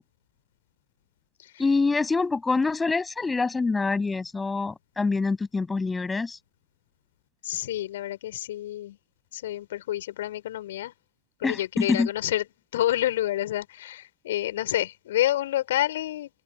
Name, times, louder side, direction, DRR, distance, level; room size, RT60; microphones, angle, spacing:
voice 1, 1.6-6.4 11.4-12.1, left 4 dB, 10° left, 8.0 m, -25 dB
voice 2, 7.4-9.0 9.3-10.9 11.4-12.5 12.7-16.3, left 13 dB, 55° left, 5.3 m, -28 dB
figure-of-eight pair, 90°, 0 cm